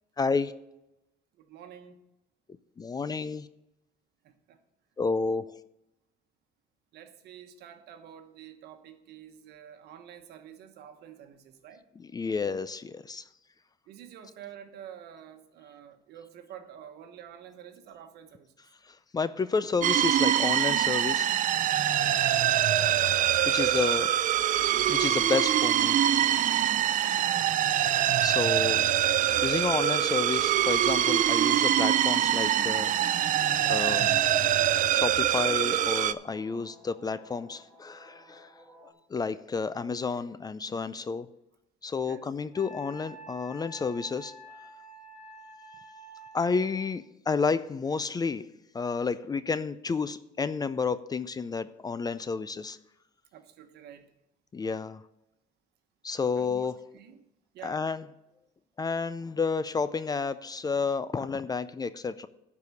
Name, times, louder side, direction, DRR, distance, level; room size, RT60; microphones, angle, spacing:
voice 1, 0.2-0.5 2.8-3.5 5.0-5.6 12.1-13.2 18.9-21.3 23.1-24.1 24.7-26.0 28.2-28.9 29.4-33.0 33.7-34.2 34.9-38.5 39.1-41.3 41.8-44.3 46.3-48.5 48.7-52.8 54.5-55.0 56.0-56.8 57.6-58.1 58.8-62.3, left 4 dB, 25° left, 0.4 m, -30 dB
voice 2, 1.4-2.0 4.2-4.6 6.9-11.8 13.9-18.5 23.4-23.9 27.0-27.5 42.0-42.3 53.3-54.1 56.4-57.2 57.5-57.9, right 9 dB, 75° right, 1.2 m, -49 dB
sound 1, 19.8-36.1, right 11 dB, 50° right, 0.4 m, -24 dB
sound 2, 22.6-38.9, right 1 dB, 20° right, 4.2 m, -50 dB
Wind instrument woodwind instrument, 42.5-46.8, right 1 dB, 45° left, 2.6 m, -48 dB
12.0 x 4.8 x 6.9 m
cardioid pair, 110°, 17 cm